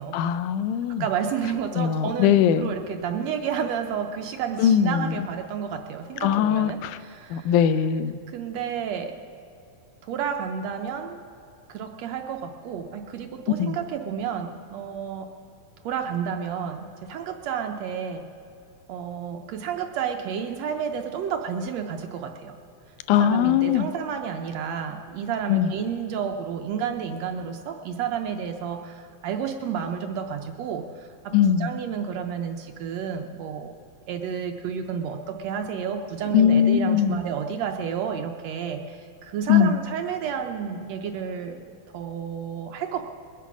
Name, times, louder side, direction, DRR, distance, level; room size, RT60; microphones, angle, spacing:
voice 1, 0.1-1.0 1.8-2.7 4.6-5.3 6.2-7.0 7.3-8.1 13.6-13.8 23.1-23.9 25.5-25.7 31.3-31.7 36.3-37.2 39.5-39.8, left 9 dB, 85° left, 13 dB, 2.1 m, -20 dB
voice 2, 0.9-7.6 8.3-9.1 10.0-11.2 11.7-15.3 15.8-18.2 18.9-22.5 23.2-33.7 34.1-43.0, right 7 dB, 75° right, 5 dB, 1.6 m, -31 dB
21.5 x 8.3 x 6.0 m, 2.7 s
omnidirectional pair, 3.5 m